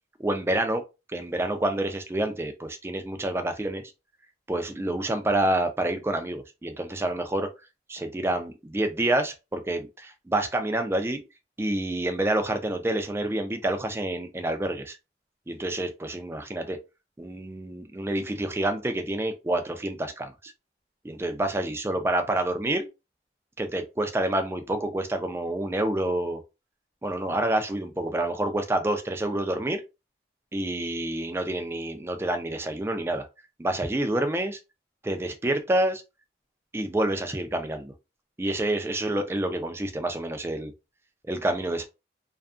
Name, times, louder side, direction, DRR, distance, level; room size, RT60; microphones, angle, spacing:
voice 1, 0.2-0.8 1.1-3.8 4.5-7.5 7.9-11.2 11.6-15.0 15.5-16.8 17.2-20.5 21.0-22.9 23.6-26.4 27.0-29.8 30.5-33.3 33.6-34.6 35.0-36.0 36.7-37.9 38.4-40.7 41.3-41.8, right 1 dB, 15° right, 0.3 m, -28 dB
2.6 x 2.4 x 2.4 m
head